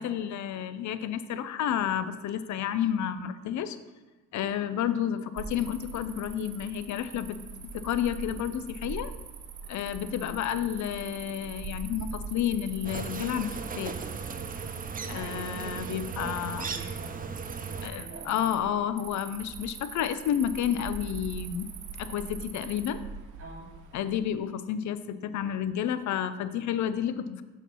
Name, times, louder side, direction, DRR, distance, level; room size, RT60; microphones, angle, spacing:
voice 1, 0.0-3.8 4.3-7.4 7.7-9.1 9.7-14.0 15.1-16.6 17.8-21.7 22.0-23.0 23.9-27.4, left 9 dB, 70° left, 12 dB, 0.6 m, -30 dB
Cricket, 5.4-24.3, right 5 dB, 75° right, 1.0 m, -43 dB
voice 2, 10.1-10.4 15.1-18.4 22.4-22.5 23.4-23.7, right 1 dB, 45° right, -1 dB, 2.4 m, -46 dB
sound 1, 12.8-17.9, right 5 dB, 30° right, 0.6 m, -37 dB
6.8 x 4.5 x 6.1 m, 1.3 s
cardioid pair, 90°, 30 cm